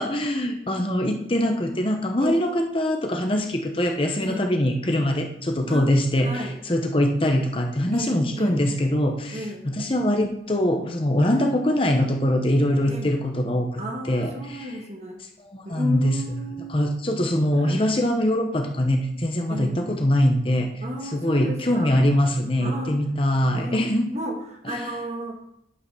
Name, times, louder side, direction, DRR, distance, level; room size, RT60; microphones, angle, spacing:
voice 1, 0.0-13.8 14.1-14.7 15.5-16.4 16.7-20.7 21.1-24.1 24.8-24.9, left 1 dB, 30° left, 3 dB, 1.0 m, -23 dB
voice 2, 6.2-6.6 7.9-8.6 9.3-9.7 11.3-11.5 12.8-13.2 13.8-15.2 15.6-16.8 17.5-17.8 19.5-19.8 20.8-21.9 22.6-22.9 23.5-23.8 24.1-24.4 24.7-25.4, equal, 40° right, 1 dB, 1.7 m, -33 dB
9.7 x 5.7 x 5.7 m, 0.78 s
head